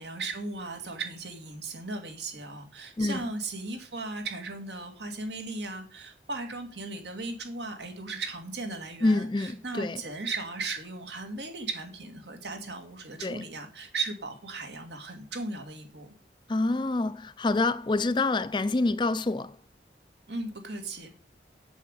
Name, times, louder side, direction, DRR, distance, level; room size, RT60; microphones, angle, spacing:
voice 1, 0.0-16.1 20.3-21.1, right 3 dB, 80° right, 2.3 m, -37 dB
voice 2, 9.0-10.0 13.2-13.4 16.5-19.6, left 2 dB, 25° left, 0.4 m, -27 dB
7.8 x 7.8 x 6.6 m
head